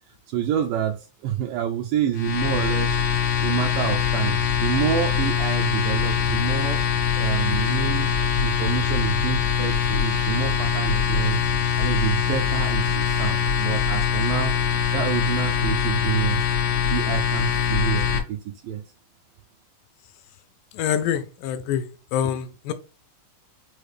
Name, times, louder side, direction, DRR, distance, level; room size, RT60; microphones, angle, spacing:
voice 1, 0.3-1.0 1.2-3.0 3.4-6.8 7.2-8.1 8.4-11.4 11.8-14.5 14.9-16.5 16.9-18.8, right 10 dB, 80° right, 2.2 m, -28 dB
sound 1, 2.1-18.2, left 7 dB, 65° left, 1.8 m, -23 dB
voice 2, 20.8-21.8 22.1-22.7, left 9 dB, 80° left, 2.1 m, -25 dB
6.4 x 2.4 x 3.2 m
omnidirectional pair, 4.0 m